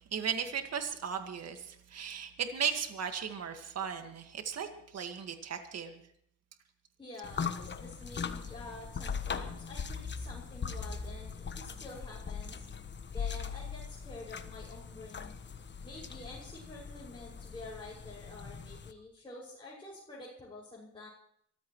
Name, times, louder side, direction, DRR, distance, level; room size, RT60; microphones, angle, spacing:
voice 1, 0.1-6.0, right 7 dB, 55° right, 6 dB, 1.9 m, -36 dB
voice 2, 7.0-12.6 13.1-15.3 15.8-21.1, left 2 dB, 15° left, -7 dB, 6.3 m, -48 dB
sound 1, 7.2-18.9, left 6 dB, 35° left, 1.3 m, -40 dB
25.5 x 14.5 x 3.2 m, 0.68 s
cardioid pair, 90°, 30 cm